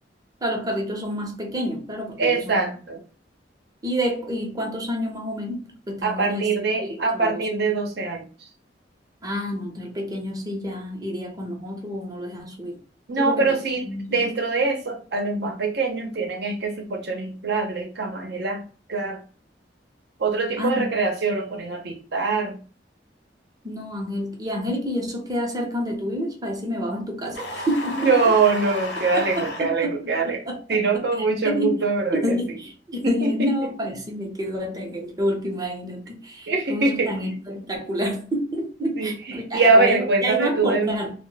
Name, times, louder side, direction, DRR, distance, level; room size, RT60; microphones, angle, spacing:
voice 1, 0.4-2.7 3.8-6.5 6.8-7.7 9.2-12.8 13.2-13.6 13.9-14.3 20.6-20.9 23.6-28.1 29.1-31.0 31.4-31.8 32.1-41.1, equal, 20° right, 0.7 m, -29 dB
voice 2, 2.2-3.0 6.0-8.5 13.1-13.9 14.1-19.2 20.2-22.6 28.0-30.4 30.7-32.6 33.0-33.7 36.5-37.1 38.8-41.0, right 3 dB, 65° right, 0.7 m, -23 dB
sound 1, 27.3-29.7, left 1 dB, 70° left, 0.9 m, -32 dB
2.2 x 2.1 x 3.8 m
head